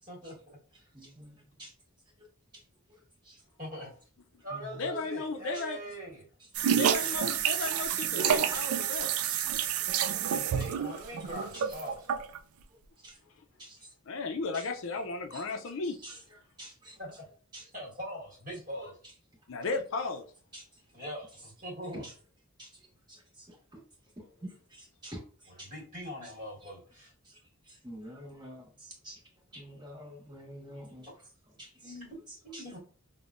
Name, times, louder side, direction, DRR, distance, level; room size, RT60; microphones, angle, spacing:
voice 1, 0.1-0.6 3.6-3.9 4.4-6.3 10.3-12.1 17.0-17.1 17.7-19.0 20.9-22.1 25.6-27.1 31.8-32.2 32.4-32.8, equal, 40° right, 1.4 m, -42 dB
voice 2, 0.9-1.7 2.2-2.3 2.9-3.4 4.5-4.9 5.5-5.6 6.4-7.1 7.6-7.9 8.2-9.8 11.5-11.6 12.7-13.2 13.6-13.9 14.5-14.7 15.3-15.4 15.8-17.0 17.5-17.6 20.5-20.8 21.9-22.1 22.6-23.8 24.4-25.7 26.2-26.3 26.6-26.7 27.2-29.2 29.5-31.1 31.6-31.9 32.3-32.6, right 1 dB, 20° right, 1.3 m, -49 dB
voice 3, 4.8-5.8 6.8-9.1 14.1-16.0 19.5-20.2, left 3 dB, 60° left, 0.5 m, -34 dB
sound 1, 6.5-12.4, right 9 dB, 85° right, 0.3 m, -29 dB
5.2 x 2.1 x 2.5 m
head